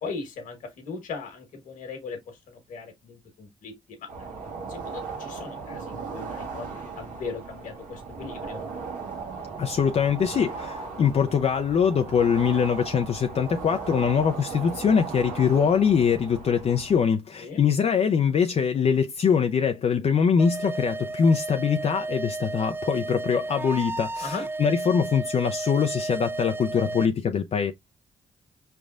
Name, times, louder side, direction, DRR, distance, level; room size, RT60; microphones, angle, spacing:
voice 1, 0.0-4.4 4.7-8.7 17.4-17.6 24.2-24.4, left 4 dB, 75° left, 1.3 m, -38 dB
sound 1, 4.1-17.1, right 4 dB, 75° right, 1.4 m, -37 dB
voice 2, 9.6-27.7, left 6 dB, 50° left, 0.5 m, -23 dB
sound 2, 20.4-27.1, right 2 dB, 15° right, 0.3 m, -33 dB
5.0 x 3.3 x 2.4 m
supercardioid pair, 50°, 14 cm